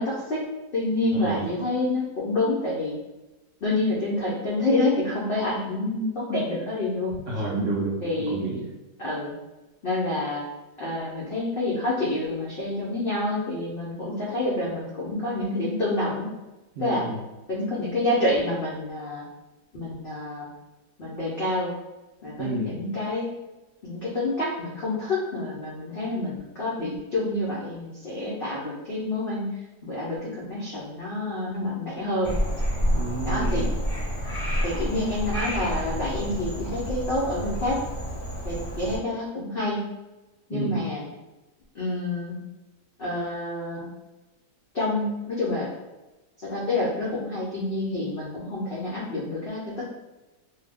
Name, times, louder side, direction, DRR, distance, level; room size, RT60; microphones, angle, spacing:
voice 1, 0.0-2.9 3.6-7.1 8.0-8.4 9.0-9.3 9.8-10.4 10.8-16.3 16.8-17.1 17.5-19.2 19.7-20.5 21.0-21.7 22.2-23.3 23.8-29.5 29.8-32.3 33.2-33.7 34.6-37.8 38.4-39.9 40.5-41.1 41.7-42.3 43.0-43.9 44.7-45.7 46.4-49.9, left 2 dB, 70° left, -7 dB, 0.5 m, -28 dB
voice 2, 1.1-1.5 7.3-8.0 8.3-8.6 16.8-17.2 22.4-22.8 32.9-33.8 40.5-40.8, right 3 dB, 70° right, -5 dB, 0.7 m, -30 dB
Frog, 32.2-39.0, equal, 15° left, 0.5 m, -29 dB
2.7 x 2.0 x 3.4 m, 1.1 s
omnidirectional pair, 1.8 m